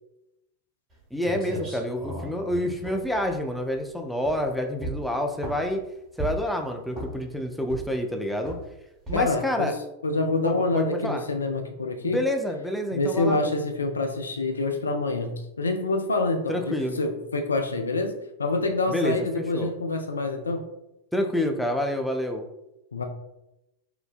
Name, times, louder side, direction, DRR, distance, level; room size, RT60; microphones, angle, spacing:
sound 1, 0.9-1.0 1.2-3.8 4.2-4.5 4.8-5.8 6.2-6.6 6.9-7.3 7.7-8.1 8.5-8.7 9.1-9.4, equal, 20° right, 1.3 m, -36 dB
voice 1, 1.1-5.8 6.2-8.6 9.1-9.7 10.4-11.2 12.0-13.4 16.5-17.0 18.9-19.7 21.1-22.5, left 1 dB, ahead, 3 dB, 0.3 m, -28 dB
voice 2, 9.1-9.7 10.0-12.2 12.9-18.1 18.4-20.6 22.9-23.0, left 2 dB, 75° left, 4 dB, 0.3 m, -26 dB
3.8 x 2.1 x 2.4 m, 0.89 s
figure-of-eight pair, 90°, 0 cm